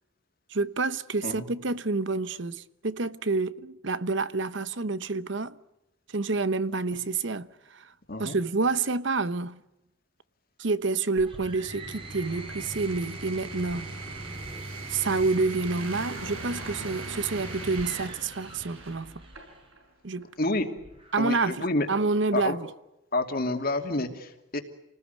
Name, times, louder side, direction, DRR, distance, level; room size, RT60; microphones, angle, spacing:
voice 1, 0.5-5.6 6.1-7.9 8.2-9.6 10.6-13.9 14.9-19.2 20.0-20.3 21.1-22.7, right 3 dB, 60° right, 1.0 m, -28 dB
sound 1, 11.2-19.6 20.8-21.4, right 2 dB, 25° right, 3.2 m, -40 dB
sound 2, 11.5-19.8 20.2-20.3, right 2 dB, 85° right, 6.6 m, -44 dB
voice 2, 21.2-21.9 22.3-22.6 23.1-24.6, left 2 dB, 45° left, 2.7 m, -28 dB
29.0 x 19.5 x 9.4 m
head